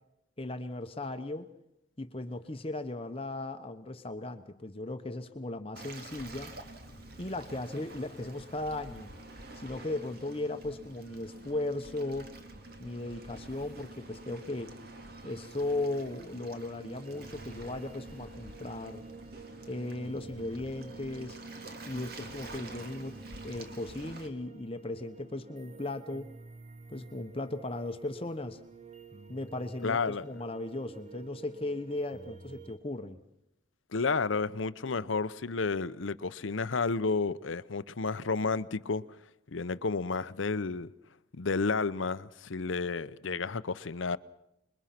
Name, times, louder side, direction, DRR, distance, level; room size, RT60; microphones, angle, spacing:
voice 1, 0.4-1.5 2.0-6.5 7.2-9.1 9.6-12.3 12.8-14.7 15.2-19.0 19.7-21.4 21.9-23.2 23.4-26.3 26.9-28.6 29.3-33.2, left 2 dB, 30° left, 1.0 m, -37 dB
Waves surf, 5.8-24.3, right 2 dB, 50° right, 2.3 m, -47 dB
sound 1, 15.3-32.8, right 5 dB, 35° right, 1.1 m, -52 dB
voice 2, 29.8-30.2 33.9-39.0 39.5-40.9 41.3-44.2, left 4 dB, 80° left, 0.8 m, -31 dB
26.5 x 22.0 x 5.9 m
head